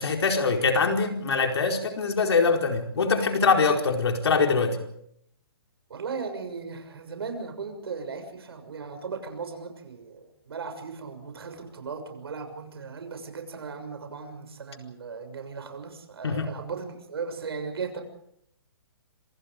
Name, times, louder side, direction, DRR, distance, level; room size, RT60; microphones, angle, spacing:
voice 1, 0.0-4.8 16.2-16.5, left 4 dB, 85° left, 3 dB, 4.6 m, -23 dB
voice 2, 5.9-18.0, right 5 dB, 70° right, 6 dB, 6.7 m, -37 dB
27.0 x 26.0 x 5.2 m, 0.72 s
hypercardioid pair, 180°, 13 cm